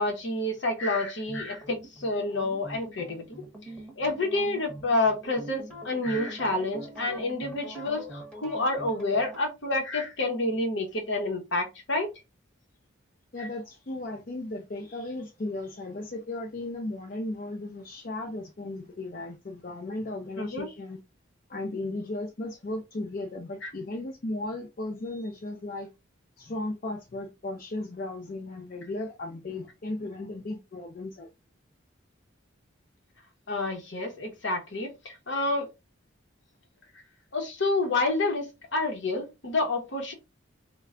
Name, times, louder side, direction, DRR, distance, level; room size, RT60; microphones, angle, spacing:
voice 1, 0.0-3.4 4.0-12.1 20.4-20.7 23.6-23.7 33.5-35.7 37.3-38.5 38.7-40.1, left 2 dB, 65° left, 0.9 m, -29 dB
sound 1, 1.3-9.4, right 1 dB, 5° left, 0.9 m, -44 dB
voice 2, 13.3-21.0 21.5-25.9 26.4-31.3, left 2 dB, 40° left, 0.4 m, -36 dB
3.2 x 2.2 x 3.6 m
head